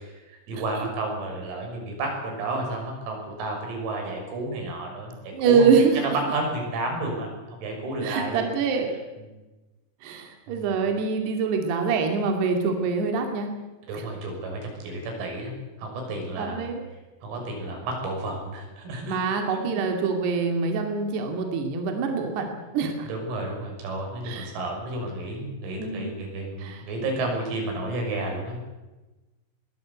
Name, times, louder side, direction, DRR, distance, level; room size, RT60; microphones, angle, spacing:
voice 1, 0.5-5.7 6.0-8.5 10.5-10.6 13.9-15.5 15.8-16.7 17.2-19.2 19.5-19.8 23.0-28.6, right 2 dB, 90° right, 2 dB, 8.8 m, -31 dB
voice 2, 5.3-6.0 8.0-9.0 10.0-13.5 13.9-14.0 16.4-16.8 19.1-23.1 24.2-24.5 25.8-26.1 26.6-26.8, right 5 dB, 55° right, 3 dB, 4.2 m, -25 dB
22.0 x 20.0 x 8.2 m, 1.1 s
omnidirectional pair, 6.0 m